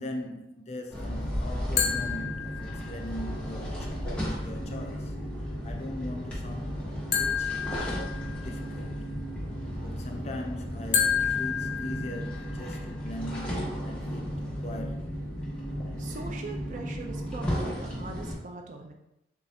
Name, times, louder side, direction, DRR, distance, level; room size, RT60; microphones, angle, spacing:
voice 1, 0.0-5.1 5.6-6.9 7.1-9.0 9.8-14.3 14.6-15.2, left 1 dB, 40° left, 0.4 m, -40 dB
sound 1, 0.9-18.3, equal, 5° left, 1.1 m, -34 dB
sound 2, 1.8-3.1 7.1-8.6 10.9-12.6, left 7 dB, 65° left, 0.9 m, -30 dB
voice 2, 16.0-18.9, right 3 dB, 45° right, 0.4 m, -41 dB
6.9 x 2.5 x 2.7 m
head